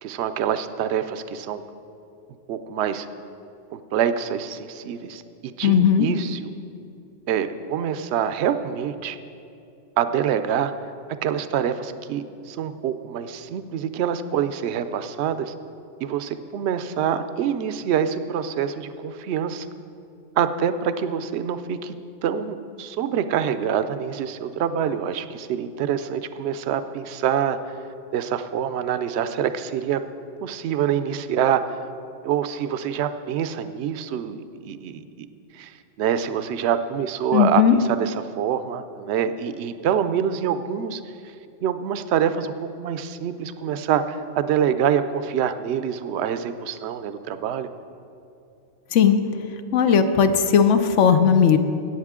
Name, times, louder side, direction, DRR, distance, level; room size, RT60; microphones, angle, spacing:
voice 1, 0.0-1.6 2.5-3.1 3.7-6.5 7.3-9.2 10.0-10.7 11.1-15.5 16.0-19.7 20.4-21.9 22.2-27.8 28.1-30.0 30.4-31.8 32.2-35.3 35.5-41.3 41.6-47.7, right 8 dB, 70° right, 11 dB, 0.8 m, -26 dB
voice 2, 5.6-6.1 37.3-37.7 48.9-49.2 49.7-51.6, left 7 dB, 75° left, 9 dB, 1.0 m, -17 dB
17.0 x 7.9 x 3.7 m, 2.7 s
omnidirectional pair, 1.3 m